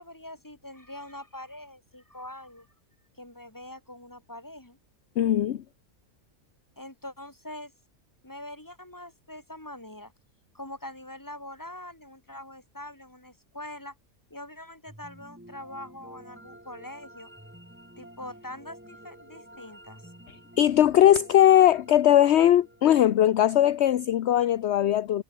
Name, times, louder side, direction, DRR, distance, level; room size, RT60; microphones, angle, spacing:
voice 1, 0.0-2.7 3.2-4.8 6.8-7.7 8.2-10.1 10.5-13.9 14.3-17.3 18.0-20.1, left 1 dB, 15° left, 3.4 m, -43 dB
voice 2, 5.2-5.6 20.6-25.2, left 11 dB, 60° left, 0.9 m, -20 dB
sound 1, 14.9-24.0, right 1 dB, 10° right, 2.9 m, -50 dB
omnidirectional pair, 1.5 m